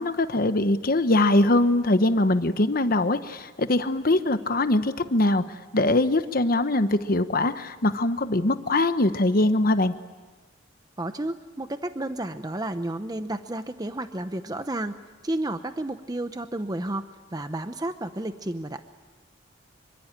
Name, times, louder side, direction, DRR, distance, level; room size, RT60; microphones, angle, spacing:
voice 1, 0.0-9.9, left 2 dB, 50° left, 10 dB, 1.1 m, -22 dB
voice 2, 11.0-17.0 17.3-18.8, right 1 dB, 20° right, 9 dB, 0.8 m, -31 dB
26.5 x 24.5 x 9.0 m, 1.3 s
head